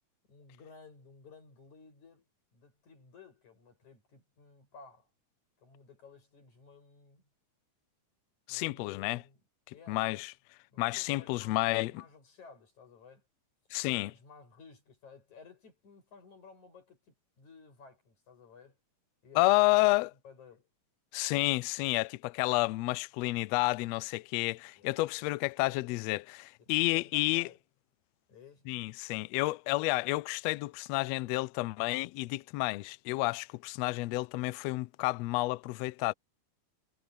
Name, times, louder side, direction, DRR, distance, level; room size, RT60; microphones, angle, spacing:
voice 1, 0.3-2.3 2.5-5.1 5.6-7.2 8.5-9.4 9.7-10.0 10.7-13.2 13.8-18.8 19.2-19.5 20.2-20.7 24.7-26.0 26.6-27.6 28.3-28.7, left 5 dB, 65° left, 9.1 m, -55 dB
voice 2, 8.5-9.2 9.9-10.3 10.8-11.9 13.7-14.1 19.4-20.1 21.1-27.5 28.7-36.1, left 22 dB, 90° left, 1.4 m, -30 dB
omnidirectional pair, 3.6 m